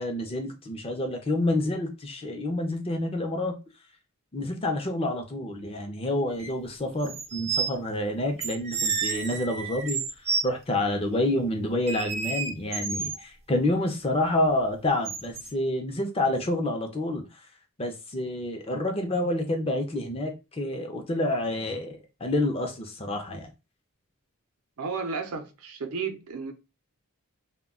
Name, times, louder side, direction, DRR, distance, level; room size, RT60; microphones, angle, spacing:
voice 1, 0.0-3.6 4.3-10.0 10.4-17.3 17.8-23.5, left 1 dB, 25° left, 0.5 m, -28 dB
sound 1, 6.4-6.5 7.0-7.7 8.4-10.4 11.9-13.2 15.0-15.5, right 5 dB, 30° right, 0.4 m, -30 dB
voice 2, 24.8-26.5, right 5 dB, 80° right, 0.6 m, -33 dB
2.2 x 2.2 x 3.6 m
head